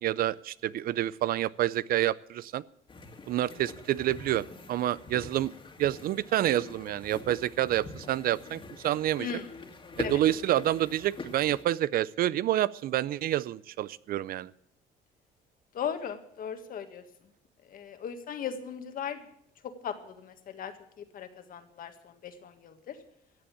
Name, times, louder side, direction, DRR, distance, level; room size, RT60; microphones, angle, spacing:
voice 1, 0.0-2.6 3.3-5.5 5.8-9.3 10.0-14.5, right 13 dB, 60° right, 20 dB, 0.5 m, -28 dB
sound 1, 2.9-11.7, left 3 dB, 30° left, 2.2 m, -43 dB
voice 2, 15.7-17.0 17.7-19.2 19.8-20.7 21.0-23.0, left 7 dB, 55° left, 8 dB, 1.8 m, -38 dB
15.5 x 7.8 x 8.6 m, 0.72 s
cardioid pair, 110°, 17 cm